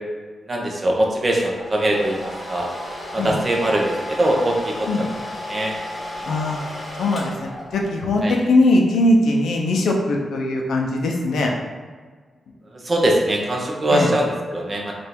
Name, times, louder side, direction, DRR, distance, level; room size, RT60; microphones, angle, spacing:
voice 1, 0.5-2.7 3.1-4.9 5.5-5.7 8.2-8.3 12.7-14.9, right 1 dB, 35° right, -1 dB, 0.8 m, -21 dB
Domestic sounds home sounds, 1.4-8.0, left 1 dB, 15° left, 1.1 m, -33 dB
voice 2, 6.3-6.6 7.0-11.5 13.9-14.1, left 2 dB, 90° left, 0 dB, 0.6 m, -20 dB
3.4 x 2.5 x 4.4 m, 1.5 s
cardioid pair, 90°, 0 cm